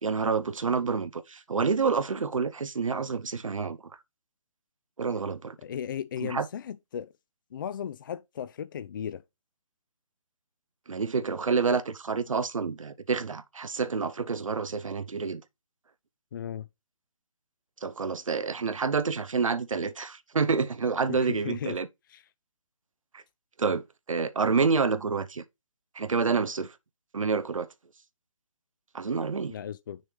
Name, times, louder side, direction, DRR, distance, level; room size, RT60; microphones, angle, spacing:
voice 1, 0.0-3.8 5.0-5.6 6.2-6.5 10.9-15.4 17.8-21.9 23.1-23.2 23.6-25.4 25.9-26.7 27.1-27.7 28.9-29.5, right 5 dB, 80° right, 0.7 m, -28 dB
voice 2, 5.6-7.1 7.5-9.2 16.3-16.7 21.1-21.8 22.1-22.2 29.5-30.0, left 9 dB, 40° left, 0.4 m, -36 dB
6.4 x 3.2 x 5.4 m
figure-of-eight pair, 145°, 17 cm